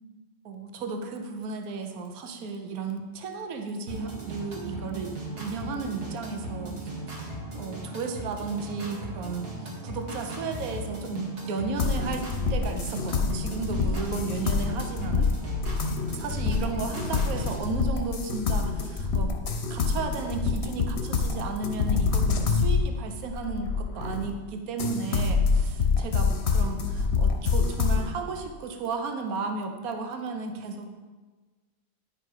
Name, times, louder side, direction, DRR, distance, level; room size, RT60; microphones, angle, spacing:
voice 1, 0.4-9.5 9.8-15.3 16.1-19.3 19.7-25.4 26.0-30.9, right 4 dB, 70° right, 5 dB, 1.3 m, -34 dB
sound 1, 3.9-17.6, right 1 dB, 90° right, 2.5 m, -37 dB
sound 2, 11.8-24.4 24.8-28.1, left 4 dB, 50° left, 1.0 m, -26 dB
10.0 x 5.6 x 4.9 m, 1.3 s
omnidirectional pair, 1.6 m